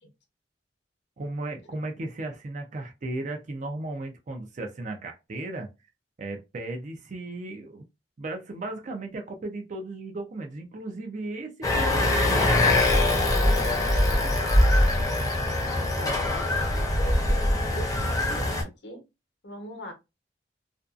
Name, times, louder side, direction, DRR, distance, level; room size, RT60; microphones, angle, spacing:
voice 1, 1.2-5.7 6.2-7.8 8.2-12.8, right 2 dB, 45° right, 0.4 m, -35 dB
sound 1, 11.6-18.6, left 1 dB, 20° left, 0.6 m, -23 dB
voice 2, 15.6-19.0 19.4-19.9, equal, 70° left, 0.8 m, -42 dB
2.5 x 2.2 x 2.4 m
head